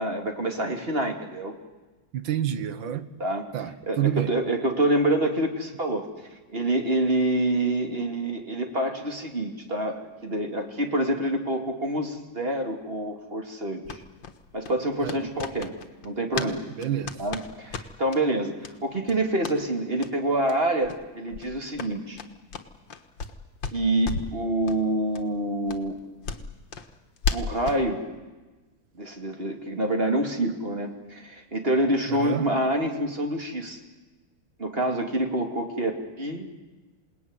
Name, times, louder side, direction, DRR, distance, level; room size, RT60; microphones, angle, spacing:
voice 1, 0.0-1.6 3.2-6.1 6.5-14.0 14.5-15.8 16.0-16.7 17.2-18.5 18.8-22.2 23.7-25.9 27.3-28.0 29.0-33.8 34.6-36.5, right 1 dB, 30° right, 2.7 m, -27 dB
voice 2, 2.1-3.1 3.5-4.3 15.0-15.3 16.4-17.2 32.1-32.5, right 10 dB, 80° right, 1.9 m, -29 dB
sound 1, 13.8-16.5 16.8-18.2 18.6-18.7 19.0-19.6 20.0-20.1 20.5-20.6 20.8-21.0 21.3-23.4 23.6-24.4 24.7-24.8 25.1-25.2 25.7-27.8, left 5 dB, 75° left, 2.2 m, -34 dB
27.5 x 19.5 x 9.7 m
omnidirectional pair, 2.1 m